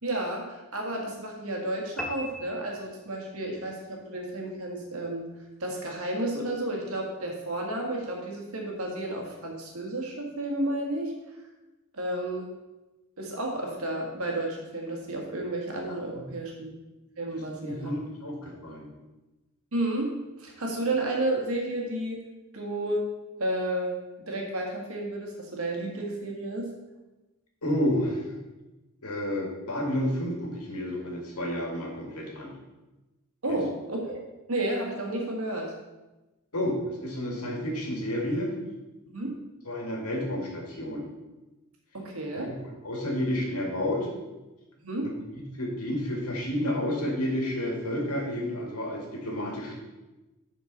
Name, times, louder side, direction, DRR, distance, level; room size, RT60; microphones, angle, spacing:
voice 1, 0.0-5.3 5.6-11.1 11.9-12.5 13.2-16.8 17.2-18.3 19.7-20.1 20.4-22.2 22.5-23.1 23.4-26.7 33.4-34.2 34.5-35.7 39.1-39.3 41.9-42.5 44.8-45.0, right 1 dB, 70° right, 0 dB, 1.7 m, -32 dB
sound 1, 2.0-3.5, equal, ahead, 0.6 m, -39 dB
voice 2, 17.3-18.9 27.6-28.2 29.0-32.5 33.5-33.6 36.5-38.5 39.7-41.1 42.6-44.1 45.0-49.8, left 1 dB, 85° left, 0 dB, 2.0 m, -30 dB
11.0 x 4.6 x 4.0 m, 1.1 s
head